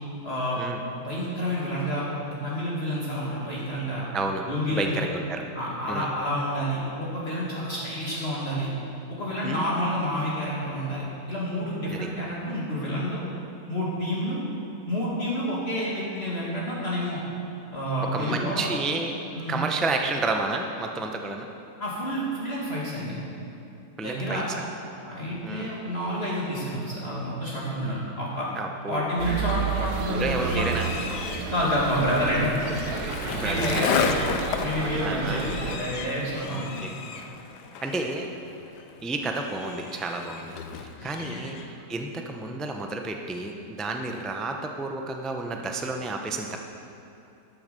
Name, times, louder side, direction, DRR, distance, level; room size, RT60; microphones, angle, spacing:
voice 1, 0.2-0.6 1.0-4.0 4.5-4.9 5.5-8.7 9.1-13.2 13.7-14.4 14.9-17.2 17.7-18.7 19.3-19.6 21.8-23.2 24.0-24.4 25.0-28.5 28.9-30.7 31.5-32.5 33.4-34.2 34.6-36.8 41.0-41.4, equal, 35° left, -6 dB, 2.4 m, -29 dB
voice 2, 4.1-5.4 5.9-6.1 9.4-9.7 11.9-12.1 18.0-19.1 19.5-21.5 24.0-24.6 25.4-25.7 28.5-29.0 30.1-30.9 33.2-34.1 35.0-35.5 36.5-37.0 37.8-38.3 39.0-46.6, right 3 dB, ahead, 3 dB, 0.4 m, -31 dB
sound 1, 29.2-35.8, right 5 dB, 70° right, 1.6 m, -31 dB
Livestock farm animals working animals, 30.3-38.2 38.6-38.9 39.3-40.6 40.9-41.9, left 5 dB, 60° left, 1.1 m, -43 dB
Skateboard, 30.7-41.2, left 6 dB, 85° left, 1.4 m, -33 dB
12.5 x 9.2 x 6.7 m, 2.8 s
omnidirectional pair, 1.8 m